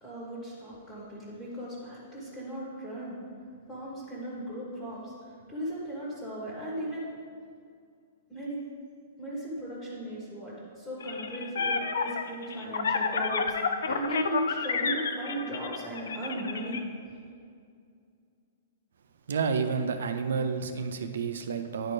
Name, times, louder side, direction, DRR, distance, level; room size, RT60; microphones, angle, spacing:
voice 1, 0.0-3.2 3.7-7.1 8.3-8.6 9.2-13.6 13.8-16.8, right 1 dB, 10° left, -7 dB, 1.4 m, -36 dB
sound 1, 11.0-16.8, left 5 dB, 90° left, 0.4 m, -30 dB
voice 2, 19.3-21.9, right 5 dB, 85° right, 7 dB, 0.5 m, -30 dB
10.0 x 4.3 x 3.3 m, 2.3 s
hypercardioid pair, 155°, 0 cm